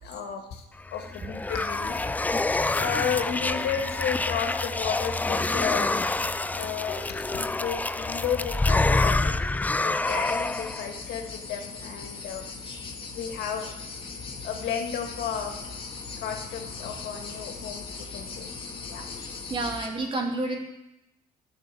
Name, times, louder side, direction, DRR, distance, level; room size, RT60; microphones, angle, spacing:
voice 1, 0.0-2.1 2.5-6.0 6.6-12.4 13.1-13.9 14.4-15.5 16.2-18.5 18.9-19.3, left 8 dB, 75° left, 4 dB, 1.9 m, -33 dB
sound 1, 0.9-10.9, left 2 dB, 10° left, 0.3 m, -27 dB
sound 2, 10.0-19.9, left 4 dB, 30° left, 1.7 m, -39 dB
voice 2, 19.5-20.6, right 2 dB, 30° right, 2 dB, 2.4 m, -29 dB
12.0 x 6.5 x 8.4 m, 0.92 s
cardioid pair, 110°, 17 cm